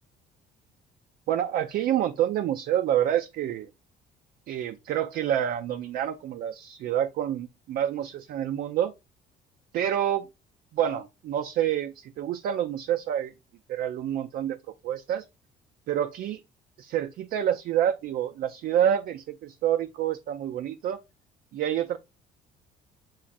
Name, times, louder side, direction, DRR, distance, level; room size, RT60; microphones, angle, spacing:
voice 1, 1.3-3.7 4.5-8.9 9.7-10.3 10.7-13.3 13.7-14.6 14.8-15.2 15.9-16.4 16.8-21.0 21.5-22.0, right 10 dB, 65° right, 0.4 m, -27 dB
7.1 x 2.4 x 2.5 m
cardioid pair, 110°, 17 cm